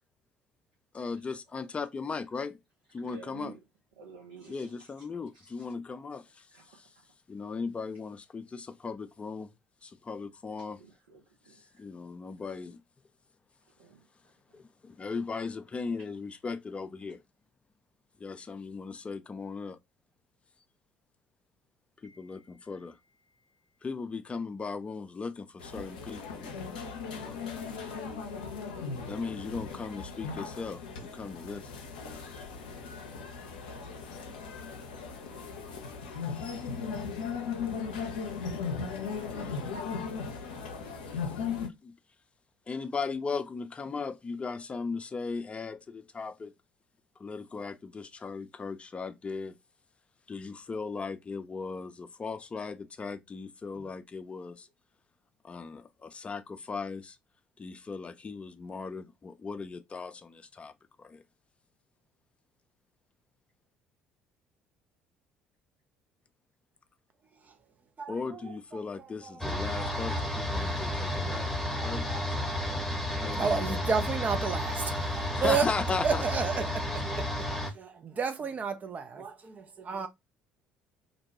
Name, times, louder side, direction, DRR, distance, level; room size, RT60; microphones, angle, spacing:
voice 1, 0.9-2.6 2.9-3.6 4.5-6.9 7.3-9.5 9.8-10.8 11.8-12.8 14.5-17.2 18.2-19.8 22.0-23.0 23.8-26.6 27.1-27.4 29.1-31.7 32.3-32.4 36.3-36.5 39.4-39.5 41.8-41.9 42.7-46.5 47.2-49.5 50.3-54.7 55.4-57.2 57.6-60.7 61.0-61.2 68.1-72.1 73.2-73.8 75.3-76.2, left 4 dB, 25° left, 0.4 m, -37 dB
voice 2, 3.0-3.6 4.0-4.7 6.5-6.8 10.8-11.8 13.8-14.0 22.0-22.6, right 6 dB, 75° right, 0.7 m, -51 dB
sound 1, 25.6-41.7, left 5 dB, 80° left, 0.5 m, -37 dB
voice 3, 68.0-70.2 71.4-72.9 73.2-75.7 76.0-80.1, right 5 dB, 35° right, 0.5 m, -33 dB
sound 2, 69.4-77.7, left 1 dB, ahead, 0.9 m, -32 dB
2.6 x 2.2 x 2.8 m
figure-of-eight pair, 55°, 5 cm